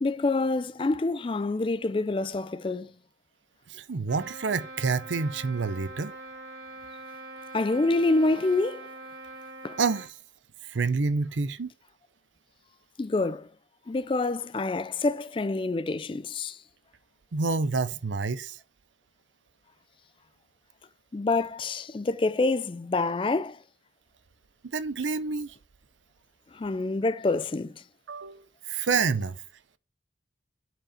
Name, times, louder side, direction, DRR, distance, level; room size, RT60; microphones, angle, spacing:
voice 1, 0.0-2.9 7.5-8.9 9.6-9.8 13.0-13.5 13.9-16.6 21.1-23.6 26.5-27.8, left 3 dB, 30° left, 0.3 m, -27 dB
voice 2, 3.7-6.1 9.8-10.1 10.7-11.7 17.3-18.6 24.7-25.5 28.1-29.4, right 4 dB, 85° right, 0.6 m, -28 dB
Trumpet, 4.1-10.1, right 2 dB, 60° right, 2.4 m, -43 dB
7.7 x 4.9 x 4.3 m
head